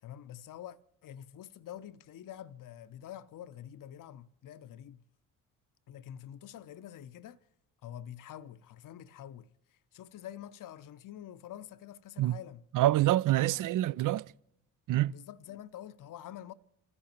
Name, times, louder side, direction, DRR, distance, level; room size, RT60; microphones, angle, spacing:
voice 1, 0.0-5.0 5.9-7.4 7.8-12.9 13.4-13.6 15.1-16.5, left 11 dB, 45° left, 0.8 m, -47 dB
voice 2, 12.7-14.3 14.9-15.2, right 15 dB, 45° right, 0.5 m, -26 dB
29.0 x 15.0 x 2.9 m
hypercardioid pair, 45°, 45 cm